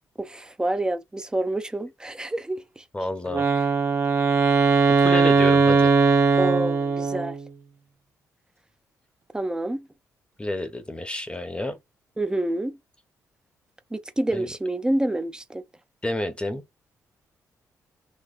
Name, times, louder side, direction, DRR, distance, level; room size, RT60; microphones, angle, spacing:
voice 1, 0.2-2.8 6.4-7.4 9.3-9.9 12.2-12.8 13.9-15.6, right 1 dB, 10° right, 0.6 m, -28 dB
voice 2, 2.9-3.5 5.0-5.9 10.4-11.8 14.3-14.5 16.0-16.6, left 1 dB, 15° left, 0.9 m, -30 dB
Wind instrument woodwind instrument, 3.3-7.5, right 5 dB, 40° right, 1.0 m, -19 dB
4.0 x 2.9 x 2.5 m
cardioid pair, 70°, 7 cm